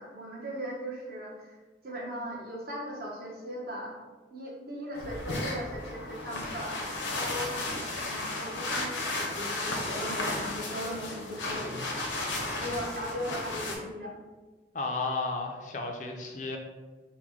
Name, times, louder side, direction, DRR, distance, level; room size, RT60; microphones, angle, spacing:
voice 1, 0.0-1.6 1.8-3.9 4.3-6.8 7.1-11.8 12.6-14.1, equal, 55° right, -2 dB, 0.9 m, -38 dB
sound 1, 4.9-13.7, left 2 dB, 85° left, 0.8 m, -34 dB
voice 2, 14.7-16.6, left 3 dB, 40° left, 3 dB, 0.4 m, -33 dB
4.0 x 2.2 x 4.4 m, 1.3 s
head